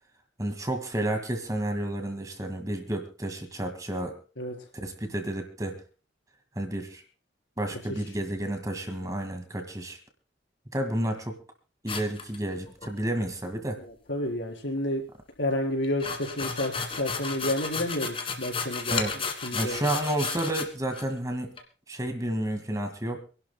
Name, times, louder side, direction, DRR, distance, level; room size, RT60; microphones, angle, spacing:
voice 1, 0.4-4.2 4.7-5.8 6.6-7.0 7.6-10.0 10.7-11.4 11.8-13.8 18.9-19.1 19.5-21.5 21.9-23.2, right 1 dB, 20° right, 5 dB, 1.9 m, -31 dB
sound 1, 11.9-12.9 15.8-20.7 20.9-21.0 21.6-21.7, left 5 dB, 30° left, 1.6 m, -33 dB
voice 2, 13.8-15.0 15.4-19.9, left 1 dB, 85° left, 1 dB, 4.1 m, -30 dB
27.0 x 11.5 x 2.2 m, 0.36 s
head